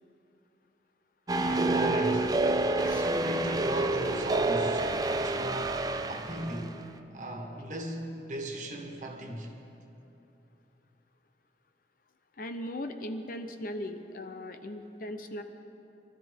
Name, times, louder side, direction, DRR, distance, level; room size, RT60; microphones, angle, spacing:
sound 1, 1.3-6.6, right 2 dB, 20° right, 0.4 m, -28 dB
voice 1, 1.3-2.3 2.8-6.8 7.1-9.5, right 1 dB, 45° right, 1 dB, 1.6 m, -37 dB
voice 2, 12.4-15.4, left 1 dB, 50° left, 7 dB, 0.7 m, -38 dB
23.5 x 13.5 x 3.6 m, 2.9 s
head